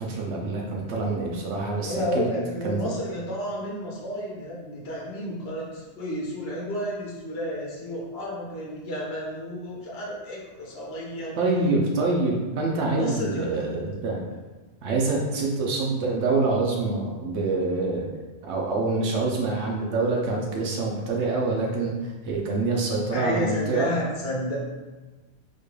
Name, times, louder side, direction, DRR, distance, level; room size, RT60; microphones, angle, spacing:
voice 1, 0.0-2.3 2.6-2.8 11.4-14.2 14.8-18.1 18.4-23.9, right 3 dB, 90° right, -2 dB, 0.9 m, -26 dB
voice 2, 1.8-11.4 12.9-13.8 23.1-24.6, equal, 70° left, -4 dB, 0.9 m, -31 dB
4.3 x 2.3 x 3.1 m, 1.2 s
omnidirectional pair, 1.1 m